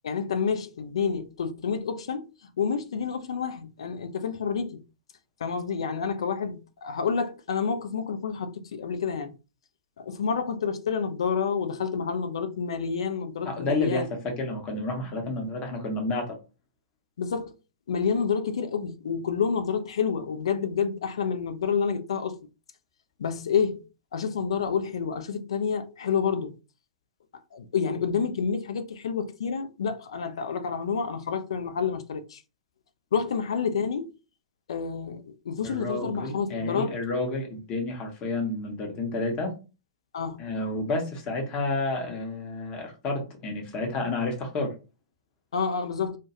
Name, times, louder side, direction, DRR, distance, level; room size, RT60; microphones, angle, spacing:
voice 1, 0.0-4.8 5.4-9.4 10.0-14.1 17.2-17.5 17.9-22.4 23.2-23.8 24.1-26.6 27.5-32.4 33.1-34.1 34.7-37.0 40.1-40.4 45.5-46.2, left 6 dB, 60° left, 0.4 m, -29 dB
voice 2, 13.4-16.4 35.6-39.5 40.4-44.7, left 2 dB, 30° left, 0.8 m, -30 dB
2.2 x 2.2 x 2.8 m
figure-of-eight pair, 105°, 3 cm